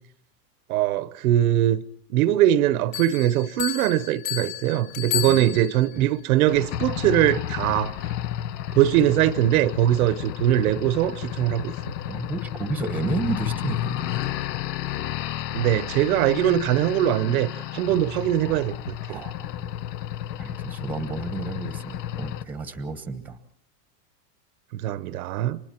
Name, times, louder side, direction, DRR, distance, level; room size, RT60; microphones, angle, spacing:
voice 1, 0.7-1.8 2.1-7.9 8.7-11.9 15.5-19.2 24.7-25.6, right 13 dB, 60° right, 1.0 m, -22 dB
sound 1, 2.9-6.0, left 13 dB, 50° left, 4.6 m, -32 dB
voice 2, 5.1-5.6 5.9-6.1 12.0-14.1 19.1-19.7 20.4-23.4, right 3 dB, 5° right, 1.1 m, -32 dB
sound 2, 6.5-22.4, left 12 dB, 75° left, 0.9 m, -32 dB
30.0 x 25.0 x 4.4 m
supercardioid pair, 160°, 50 cm